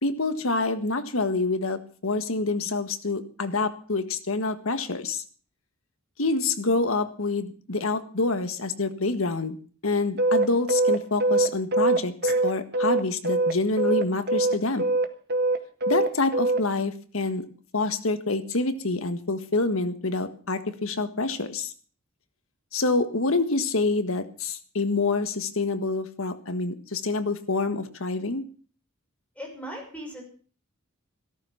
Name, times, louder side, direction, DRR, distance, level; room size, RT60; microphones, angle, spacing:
voice 1, 0.0-5.2 6.2-9.6 9.8-14.9 15.9-17.4 17.7-21.7 22.7-28.4, left 3 dB, 75° left, 10 dB, 1.6 m, -27 dB
sound 1, 10.2-13.5 13.8-16.6, right 2 dB, 50° right, 1.5 m, -22 dB
voice 2, 29.4-30.2, equal, 5° left, 1 dB, 6.0 m, -38 dB
15.0 x 13.5 x 5.8 m, 0.42 s
head